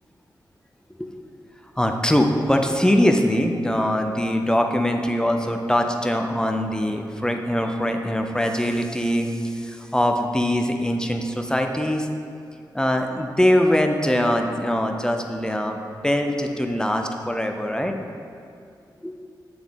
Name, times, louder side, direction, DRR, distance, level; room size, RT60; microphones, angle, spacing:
voice 1, 1.8-12.1 12.7-15.8 16.0-17.9 19.0-19.2, equal, 10° left, 4 dB, 0.5 m, -22 dB
7.8 x 3.5 x 3.5 m, 2.4 s
cardioid pair, 60°, 8 cm